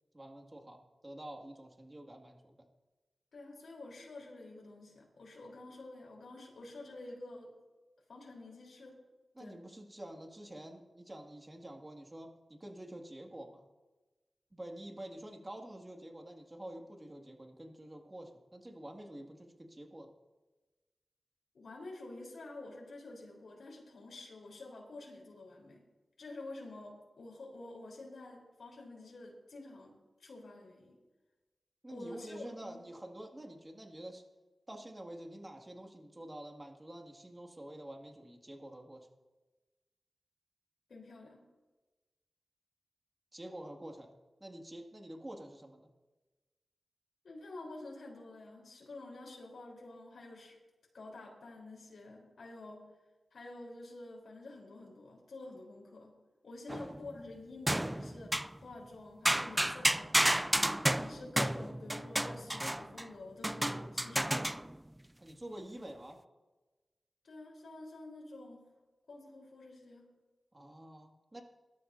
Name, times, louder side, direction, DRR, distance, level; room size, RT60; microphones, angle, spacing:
voice 1, 0.1-2.6 9.4-13.7 14.5-20.1 31.8-34.2 34.7-39.1 43.3-44.1 44.4-45.9 65.2-66.2 70.5-71.4, right 1 dB, 30° right, 3 dB, 2.1 m, -48 dB
voice 2, 3.3-7.5 8.1-8.9 9.4-9.6 21.5-25.8 26.2-29.9 30.2-31.0 31.9-32.8 40.9-41.4 47.2-50.6 50.9-52.9 53.3-56.1 56.4-60.5 60.9-64.7 67.2-68.6 69.1-70.0, left 2 dB, 85° left, -2 dB, 3.8 m, -49 dB
sound 1, 56.7-57.1 57.7-58.6 59.2-63.0 63.4-64.8, right 1 dB, 10° right, 0.3 m, -31 dB
22.5 x 12.5 x 2.7 m, 1.2 s
cardioid pair, 50°, 0 cm